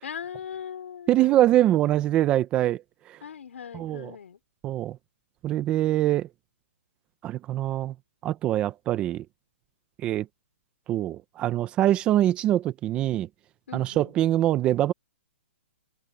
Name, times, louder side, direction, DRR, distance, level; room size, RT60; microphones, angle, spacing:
voice 1, 0.0-1.4 3.2-4.4 13.7-14.1, left 8 dB, 70° left, 4.9 m, -39 dB
voice 2, 1.1-2.8 3.7-4.1 4.6-5.0 5.4-6.3 7.2-7.9 8.2-9.2 10.0-10.3 10.9-13.3 13.7-14.9, right 13 dB, 15° right, 0.7 m, -23 dB
hypercardioid pair, 170°, 7 cm